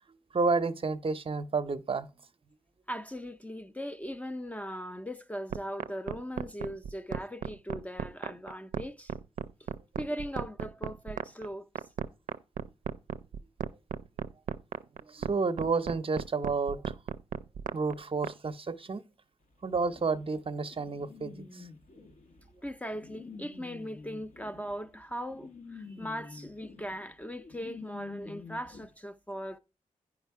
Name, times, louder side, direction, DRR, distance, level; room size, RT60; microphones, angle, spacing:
voice 1, 0.3-2.1 15.0-16.9 17.7-19.0 19.6-21.7, right 4 dB, 45° right, 0.6 m, -30 dB
voice 2, 2.9-9.1 10.0-11.7 22.6-29.6, equal, 10° left, 0.5 m, -39 dB
sound 1, 5.5-18.3, right 8 dB, 80° right, 0.4 m, -35 dB
sound 2, 19.7-28.8, left 4 dB, 70° left, 1.2 m, -48 dB
10.0 x 4.9 x 4.6 m
cardioid pair, 60°, 13 cm